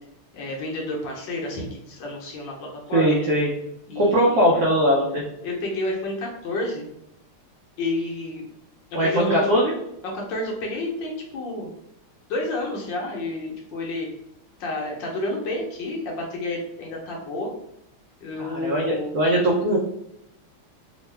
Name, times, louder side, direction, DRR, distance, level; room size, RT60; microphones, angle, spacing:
voice 1, 0.3-3.2 3.9-4.4 5.4-6.9 7.8-8.4 9.0-9.4 10.0-11.7 12.3-14.1 14.6-17.5 18.2-19.1, left 2 dB, 70° left, -1 dB, 1.2 m, -30 dB
voice 2, 2.9-3.5 4.0-5.2 8.9-9.7 18.4-19.8, equal, 85° right, -3 dB, 0.8 m, -20 dB
3.5 x 2.1 x 3.2 m, 0.80 s
omnidirectional pair, 2.4 m